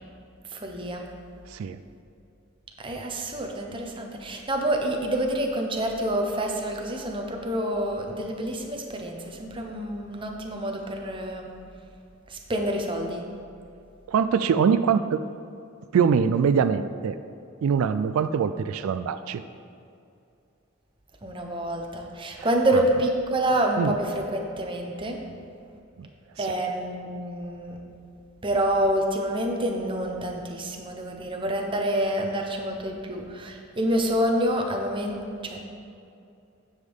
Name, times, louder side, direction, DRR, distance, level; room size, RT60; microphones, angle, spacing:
voice 1, 0.5-1.0 2.8-11.5 12.3-13.3 21.2-25.2 26.4-27.8 28.4-35.6, right 1 dB, 25° right, 2 dB, 0.8 m, -27 dB
voice 2, 14.1-15.2 15.9-17.2 17.6-19.4 23.8-23.9, right 6 dB, 90° right, 11 dB, 0.3 m, -23 dB
9.7 x 7.3 x 3.5 m, 2.5 s
head